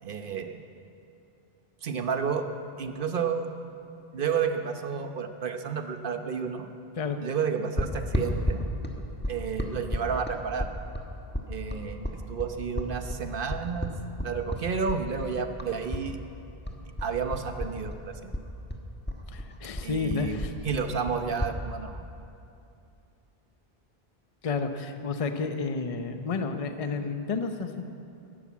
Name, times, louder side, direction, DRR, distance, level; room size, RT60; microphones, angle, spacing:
voice 1, 0.0-0.6 1.8-2.5 2.8-3.5 4.1-6.7 7.2-8.6 9.3-10.7 11.5-13.9 14.2-16.2 17.0-18.3 19.8-22.0, right 6 dB, 60° right, 7 dB, 1.1 m, -31 dB
sound 1, 7.8-16.1 16.3-18.0 18.3-21.6, left 1 dB, 10° left, 1.3 m, -32 dB
voice 2, 19.3-20.5 24.4-27.8, left 4 dB, 35° left, 7 dB, 0.8 m, -31 dB
13.0 x 11.5 x 8.4 m, 2.6 s
omnidirectional pair, 1.1 m